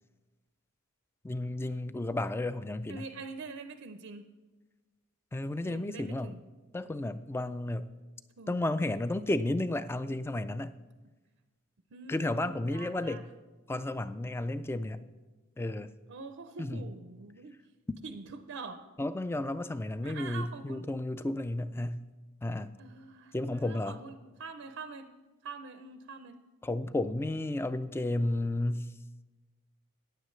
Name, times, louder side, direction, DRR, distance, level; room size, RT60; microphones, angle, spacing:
voice 1, 1.2-3.0 5.3-6.3 6.7-7.9 8.5-10.7 12.1-13.2 13.7-15.1 15.6-15.9 16.6-16.9 19.0-22.0 22.4-22.7 23.3-24.0 26.6-28.9, left 1 dB, 10° left, 13 dB, 0.3 m, -32 dB
voice 2, 2.9-4.2 5.6-6.4 8.4-8.6 11.9-13.2 16.1-17.6 18.0-18.8 20.0-20.9 22.8-25.1 25.4-26.4, right 4 dB, 65° right, 9 dB, 0.5 m, -45 dB
14.5 x 9.6 x 3.1 m, 1.2 s
head